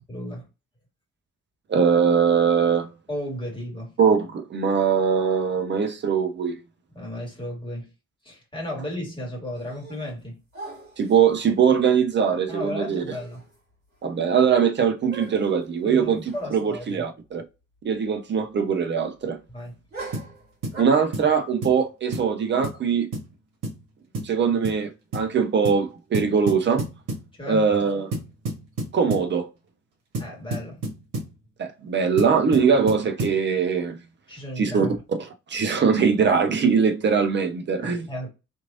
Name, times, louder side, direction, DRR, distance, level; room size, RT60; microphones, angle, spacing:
voice 1, 0.1-0.5 3.1-4.0 6.9-7.9 8.2-10.4 12.5-13.4 15.8-17.1 19.5-19.8 27.3-27.7 30.2-30.8 34.3-34.9 37.8-38.3, left 1 dB, 10° left, 1.8 m, -34 dB
voice 2, 1.7-2.9 4.0-6.5 11.0-13.0 14.0-16.2 16.5-17.4 17.8-19.4 20.8-23.1 24.2-26.8 27.5-28.1 28.9-29.5 31.6-34.0 34.6-34.9 35.2-38.1, right 6 dB, 30° right, 0.7 m, -21 dB
sound 1, 9.6-10.2 10.5-11.3 12.7-12.8 13.1-13.6 13.9-14.0 15.1-15.6 16.3-16.5 16.8-16.9 19.9-20.8, right 3 dB, 85° right, 1.0 m, -41 dB
sound 2, 20.1-20.3 20.6-20.8 21.1-21.3 21.6-21.8 22.1-22.3 22.6-22.8 23.1-23.3 23.6-23.8 24.1-24.4 24.6-24.8 25.1-25.3 25.7-25.9 26.1-27.3 28.1-29.3 30.1-31.3 32.2-33.4, right 1 dB, 50° right, 1.3 m, -31 dB
3.0 x 2.6 x 2.5 m
figure-of-eight pair, 45°, 40 cm